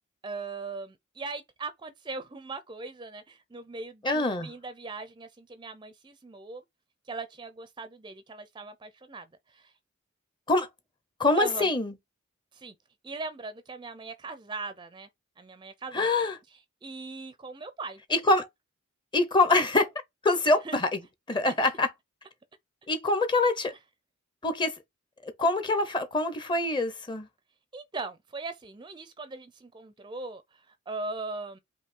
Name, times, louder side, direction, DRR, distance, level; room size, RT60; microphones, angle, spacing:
voice 1, 0.2-6.6 7.1-9.7 11.4-11.7 12.5-12.7 13.0-15.1 15.4-16.1 16.8-18.0 20.5-20.8 23.7-23.8 27.7-31.6, right 3 dB, 20° right, 0.5 m, -39 dB
voice 2, 4.0-4.5 10.5-10.7 11.2-11.9 15.9-16.4 18.1-18.5 19.1-19.9 20.2-21.0 21.3-21.9 22.9-23.7 24.4-24.8 25.2-27.3, left 2 dB, 20° left, 0.7 m, -25 dB
5.3 x 2.7 x 3.7 m
head